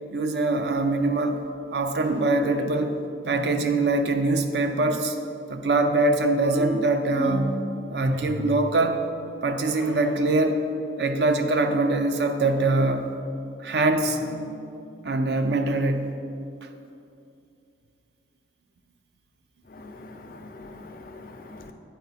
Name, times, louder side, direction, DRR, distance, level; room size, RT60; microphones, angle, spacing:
voice 1, 0.1-1.4 1.7-3.0 3.3-5.2 5.5-9.0 9.4-10.6 11.0-13.2 13.6-14.2 15.0-16.2, right 2 dB, 65° right, 6 dB, 0.5 m, -23 dB
sound 1, 2.0-2.6 3.2-3.8 6.4-7.6 8.0-8.7 9.6-10.1 12.4-13.0 14.0-14.6, right 1 dB, 80° right, 0.9 m, -33 dB
voice 2, 19.7-21.7, left 2 dB, 50° left, 6 dB, 0.5 m, -43 dB
8.0 x 4.6 x 4.1 m, 2.6 s
head